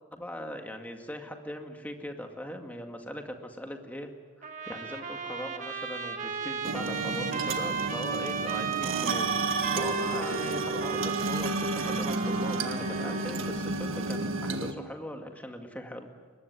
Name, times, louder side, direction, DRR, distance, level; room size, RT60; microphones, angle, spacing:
voice 1, 0.1-4.1 4.4-16.1, equal, 5° left, 4 dB, 2.1 m, -40 dB
Trumpet, 4.4-13.6, right 5 dB, 35° right, 1.8 m, -35 dB
sound 1, 6.6-14.7, right 3 dB, 70° right, 1.7 m, -31 dB
23.0 x 20.0 x 9.7 m, 1.5 s
head